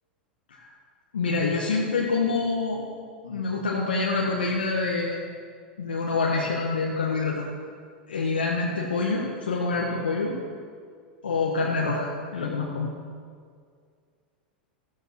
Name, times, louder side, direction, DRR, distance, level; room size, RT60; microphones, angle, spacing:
voice 1, 1.1-2.8 3.2-5.2 5.8-7.4 8.1-10.4 11.2-12.9, left 3 dB, 70° left, -2 dB, 1.5 m, -26 dB
16.5 x 13.5 x 3.1 m, 2.1 s
figure-of-eight pair, 90°, 5 cm